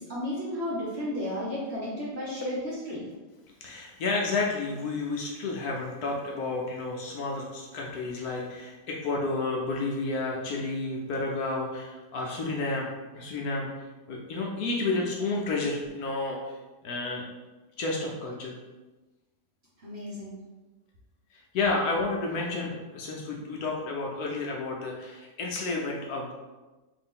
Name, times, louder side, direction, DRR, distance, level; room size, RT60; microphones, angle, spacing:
voice 1, 0.0-3.1 19.8-20.4, left 1 dB, 50° right, -6 dB, 0.9 m, -33 dB
voice 2, 3.6-12.9 13.1-17.2 17.8-18.5 21.3-26.3, left 3 dB, 70° left, -1 dB, 1.0 m, -31 dB
3.5 x 2.5 x 3.6 m, 1.2 s
omnidirectional pair, 1.8 m